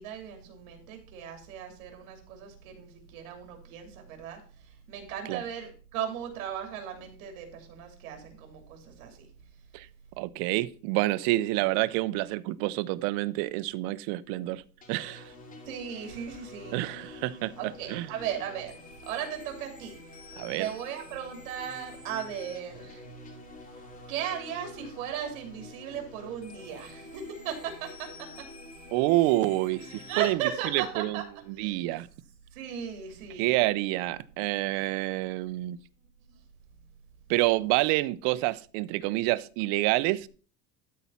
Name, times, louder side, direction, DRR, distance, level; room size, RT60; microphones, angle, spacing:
voice 1, 0.0-4.4 4.9-9.3 15.6-16.9 17.6-18.8 19.1-20.0 20.6-23.0 24.1-28.1 29.9-31.2 31.6-31.8 32.5-33.5, right 9 dB, 85° right, 3.1 m, -36 dB
voice 2, 10.2-14.6 14.9-15.2 16.7-17.5 17.9-18.1 20.4-20.7 28.9-31.2 31.5-32.1 33.4-35.8 37.3-40.3, right 18 dB, 60° right, 0.6 m, -28 dB
sound 1, 14.8-30.3, left 2 dB, 20° left, 2.6 m, -48 dB
12.5 x 4.2 x 5.7 m
cardioid pair, 140°, 41 cm